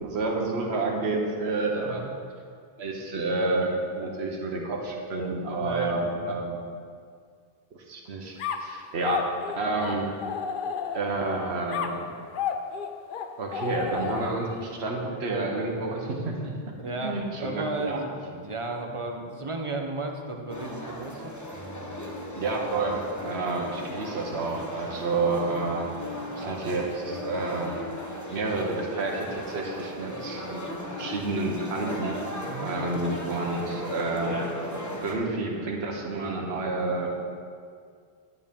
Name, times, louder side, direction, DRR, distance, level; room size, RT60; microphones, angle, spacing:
voice 1, 0.0-2.0 2.8-6.6 7.7-9.3 9.6-10.1 10.9-12.1 13.4-16.7 17.0-18.0 22.4-25.9 26.4-27.7 28.3-32.1 32.6-34.4 35.0-37.1, right 3 dB, 80° right, 0 dB, 1.3 m, -29 dB
voice 2, 5.6-6.3 16.8-21.3 23.2-23.5 24.8-24.9 26.1-26.6 32.4-32.7, right 2 dB, 35° right, 3 dB, 0.7 m, -35 dB
sound 1, 8.4-11.3 11.7-14.6, left 7 dB, 60° left, 0.7 m, -32 dB
sound 2, 20.5-35.2, left 1 dB, 20° left, 0.8 m, -37 dB
9.7 x 8.9 x 3.6 m, 2.1 s
omnidirectional pair, 1.1 m